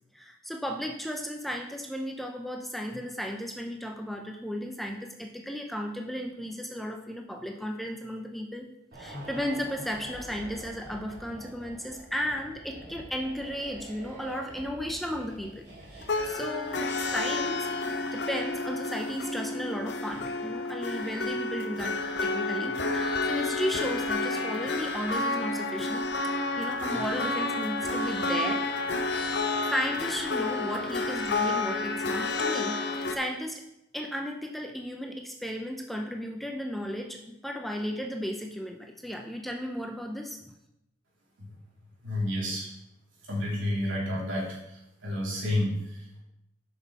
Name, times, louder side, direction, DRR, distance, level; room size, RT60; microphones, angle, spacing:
voice 1, 0.1-8.7 8.9-15.6 15.9-17.7 18.1-26.1 26.6-28.7 29.6-32.8 33.1-33.6 33.9-40.4, equal, ahead, 2 dB, 0.5 m, -34 dB
sound 1, 8.9-17.4 17.7-17.9, right 1 dB, 55° right, 3.2 m, -46 dB
sound 2, 16.0-33.2, left 2 dB, 60° left, 0.6 m, -30 dB
voice 2, 42.0-42.7 43.2-46.2, left 1 dB, 85° right, -4 dB, 2.9 m, -31 dB
7.1 x 6.1 x 4.2 m, 0.85 s
head